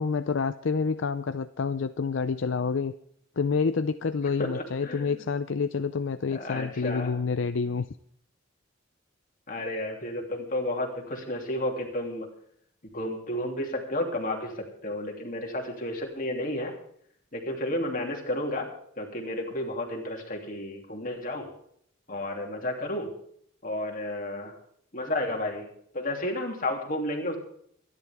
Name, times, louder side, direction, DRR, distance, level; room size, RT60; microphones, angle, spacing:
voice 1, 0.0-2.9 3.4-7.9, left 5 dB, 65° left, 11 dB, 0.5 m, -28 dB
voice 2, 4.4-5.2 6.2-7.1 9.5-12.3 12.9-16.7 17.3-18.7 19.0-21.5 22.1-23.2 23.6-24.6 24.9-25.7 25.9-27.4, left 1 dB, 40° left, 1 dB, 2.9 m, -32 dB
23.5 x 11.0 x 3.6 m, 0.66 s
head